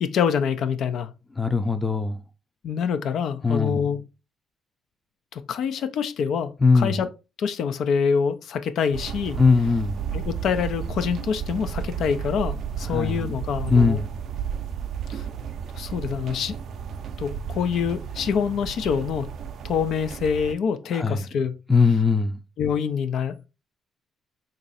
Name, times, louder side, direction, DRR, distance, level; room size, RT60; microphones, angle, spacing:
voice 1, 0.0-1.1 2.6-4.1 5.3-7.1 7.4-9.4 10.1-14.0 15.1-15.2 15.7-16.6 17.2-19.3 19.6-21.6 22.6-23.5, left 7 dB, 75° left, 0.3 m, -26 dB
voice 2, 1.4-2.2 3.4-3.8 6.6-7.0 9.4-10.0 12.9-13.3 13.7-14.1 20.9-21.2 21.7-22.4, left 4 dB, 15° left, 0.5 m, -20 dB
sound 1, 8.9-20.5, right 7 dB, 70° right, 0.4 m, -33 dB
3.0 x 2.6 x 3.9 m
cardioid pair, 90°, 0 cm